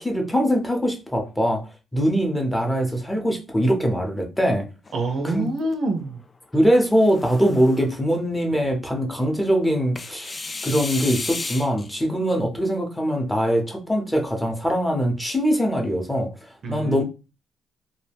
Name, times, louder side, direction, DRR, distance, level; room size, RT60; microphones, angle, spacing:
voice 1, 0.0-1.6 1.9-4.6 5.2-5.5 6.5-10.3 10.6-16.3 16.7-17.0, equal, 10° left, 3 dB, 0.7 m, -22 dB
sound 1, 4.9-5.7 6.8-7.9 10.0-11.9, left 3 dB, 30° left, 0.3 m, -34 dB
voice 2, 4.9-6.2 16.6-17.0, right 2 dB, 55° right, 5 dB, 0.5 m, -26 dB
2.3 x 2.1 x 3.3 m, 0.31 s
cardioid pair, 90°, 0 cm